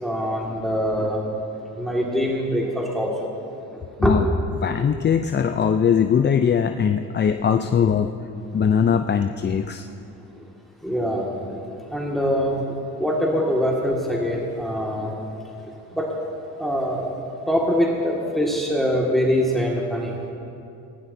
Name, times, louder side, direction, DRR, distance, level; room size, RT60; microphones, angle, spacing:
voice 1, 0.0-1.2 1.8-3.3 4.0-4.1 8.7-8.8 10.8-11.6 11.9-15.1 16.0-16.1 16.6-17.1 17.5-20.2, equal, ahead, -3 dB, 1.9 m, -23 dB
voice 2, 4.6-8.1 8.5-9.9, left 7 dB, 30° left, 7 dB, 0.5 m, -20 dB
19.0 x 16.5 x 2.7 m, 2.7 s
supercardioid pair, 80°, 36 cm